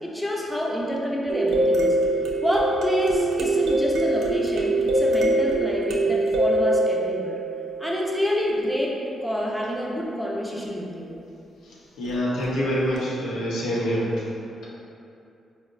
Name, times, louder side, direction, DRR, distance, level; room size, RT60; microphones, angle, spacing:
voice 1, 0.0-2.0 2.4-7.4 7.8-9.0 9.2-11.1, equal, ahead, -4 dB, 0.5 m, -27 dB
sound 1, 1.3-8.2 12.4-12.5 13.0-13.1, right 1 dB, 80° right, 0.3 m, -23 dB
voice 2, 11.6-14.3, equal, 85° left, -6 dB, 0.6 m, -26 dB
3.6 x 2.0 x 2.5 m, 2.6 s
supercardioid pair, 60°, 0 cm